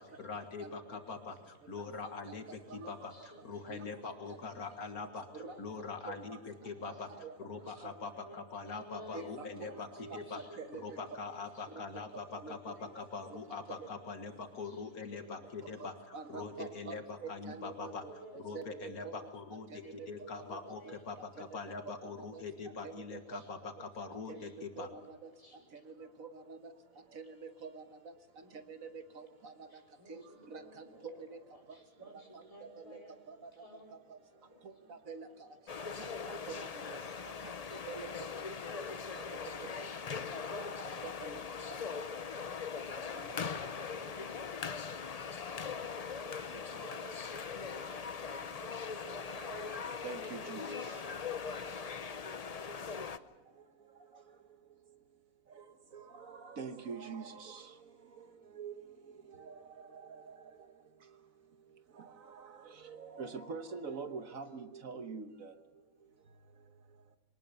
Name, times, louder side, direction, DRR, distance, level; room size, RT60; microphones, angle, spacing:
voice 1, 0.0-10.4 10.8-24.9, left 4 dB, 75° left, 6 dB, 2.1 m, -43 dB
voice 2, 3.1-4.2 4.4-4.7 5.4-5.9 8.2-11.7 11.9-13.0 13.5-13.9 14.3-14.8 15.2-16.2 17.8-19.2 19.5-21.0 21.4-21.7 22.8-23.0 23.3-23.5 24.3-24.8 25.4-25.8 27.0-27.1 28.4-28.5 29.7-34.9 35.2-35.6 37.2-37.5, equal, 20° left, 1 dB, 4.7 m, -57 dB
voice 3, 9.1-9.5 10.1-10.2 10.6-10.8 12.4-12.5 15.8-17.0 17.2-17.9 18.5-19.2 20.5-20.6 22.0-22.4 22.8-22.9 24.3-24.4 24.8-25.0 26.2-26.6 27.2-27.3 27.6-27.8 28.7-28.9 29.4-29.5 30.1-30.2 30.5-30.6 31.3-31.4 32.9-33.0 35.1-35.3 36.5-36.7 37.9-38.1 39.1-39.2 40.6-40.7 41.2-41.4 41.7-41.8 43.1-43.4 49.4-49.6 50.0-50.6 56.3-57.6 58.6-58.7 59.5-59.6 63.0-65.5, right 5 dB, 65° right, 8 dB, 1.6 m, -44 dB
sound 1, 35.7-53.2, left 5 dB, 40° left, 0.5 m, -40 dB
22.5 x 19.0 x 6.9 m, 1.1 s
omnidirectional pair, 1.5 m